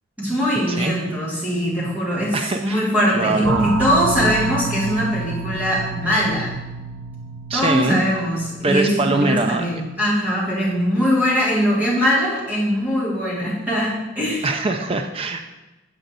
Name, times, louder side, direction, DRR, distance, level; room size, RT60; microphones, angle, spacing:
voice 1, 0.2-6.5 7.5-14.5, equal, 10° right, -7 dB, 1.9 m, -21 dB
voice 2, 0.7-1.0 2.3-2.9 3.1-3.7 7.5-8.0 8.6-9.6 14.4-15.4, right 2 dB, 25° right, 5 dB, 0.4 m, -22 dB
sound 1, 3.4-9.8, right 4 dB, 65° right, 0.6 m, -29 dB
7.9 x 4.4 x 4.0 m, 1.1 s
head